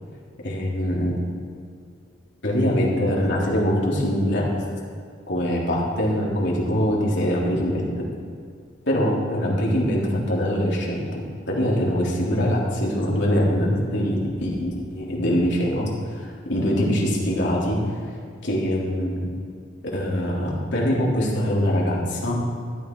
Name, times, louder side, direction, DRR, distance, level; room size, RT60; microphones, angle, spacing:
voice 1, 0.4-1.2 2.4-4.5 5.3-8.0 8.9-17.8 18.4-19.3 19.9-22.5, equal, 60° left, -4 dB, 3.5 m, -23 dB
15.5 x 13.0 x 4.7 m, 2.2 s
head